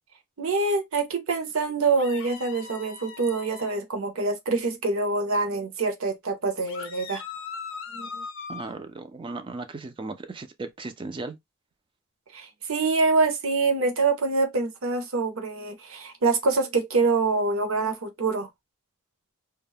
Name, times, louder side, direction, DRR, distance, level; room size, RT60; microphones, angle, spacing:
voice 1, 0.4-7.2 7.9-8.2 12.3-18.5, right 3 dB, 60° right, 0.7 m, -25 dB
sound 1, 2.0-3.8 6.7-8.7, left 6 dB, 55° left, 0.5 m, -39 dB
voice 2, 8.5-11.4, right 3 dB, 20° right, 0.3 m, -36 dB
2.2 x 2.0 x 3.3 m
head